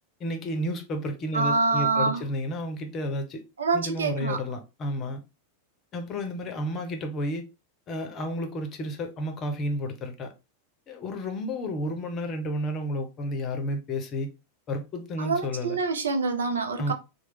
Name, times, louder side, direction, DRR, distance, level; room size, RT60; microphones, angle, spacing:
voice 1, 0.2-3.4 3.7-5.2 5.9-7.4 7.9-10.3 10.9-14.3 14.7-15.8 16.8-16.9, left 1 dB, 30° left, 0.6 m, -31 dB
voice 2, 1.3-2.2 3.6-4.4 15.2-16.9, right 4 dB, 70° right, 0.5 m, -26 dB
3.0 x 2.1 x 3.1 m
figure-of-eight pair, 90°, 0 cm